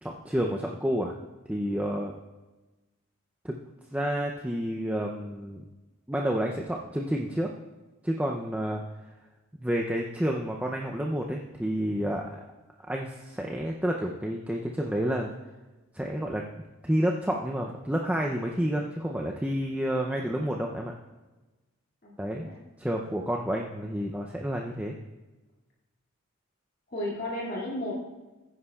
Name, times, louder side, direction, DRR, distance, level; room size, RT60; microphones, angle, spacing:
voice 1, 0.0-1.2 1.5-2.1 3.4-3.6 3.9-5.6 6.1-7.5 8.0-8.8 9.6-12.4 12.9-15.3 15.9-16.4 16.8-20.9 22.2-22.5 22.8-24.9, equal, 5° right, 0 dB, 0.5 m, -29 dB
voice 2, 22.0-22.5 26.9-28.0, left 1 dB, 45° left, -5 dB, 2.4 m, -34 dB
15.0 x 9.8 x 2.4 m, 1.2 s
head